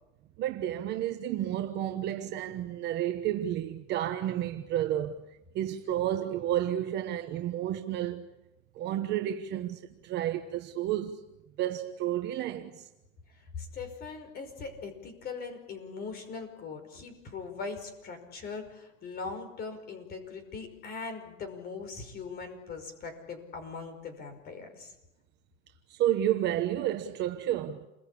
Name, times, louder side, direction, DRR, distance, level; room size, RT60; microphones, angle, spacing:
voice 1, 0.4-5.2 5.5-8.3 8.7-11.2 11.6-12.9 25.9-27.9, right 12 dB, 25° right, 1.1 m, -31 dB
voice 2, 13.6-24.9, left 4 dB, 25° left, 5.4 m, -40 dB
29.0 x 21.0 x 8.5 m
supercardioid pair, 150°, 39 cm